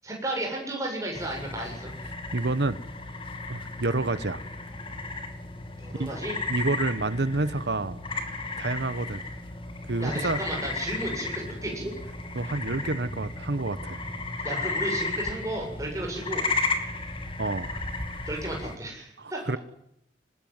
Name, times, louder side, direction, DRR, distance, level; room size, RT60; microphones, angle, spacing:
voice 1, 0.0-1.9 5.8-6.4 10.0-11.9 14.4-16.5 18.3-19.5, right 1 dB, 20° right, 0 dB, 7.6 m, -33 dB
sound 1, 1.1-18.8, left 3 dB, 30° left, 2.4 m, -34 dB
voice 2, 2.3-2.8 3.5-4.4 6.0-6.1 6.5-8.0 8.6-9.2 9.9-10.4 12.3-14.0 17.4-17.8 19.2-19.6, right 2 dB, 70° right, 15 dB, 1.1 m, -28 dB
22.5 x 20.0 x 9.6 m, 0.75 s
head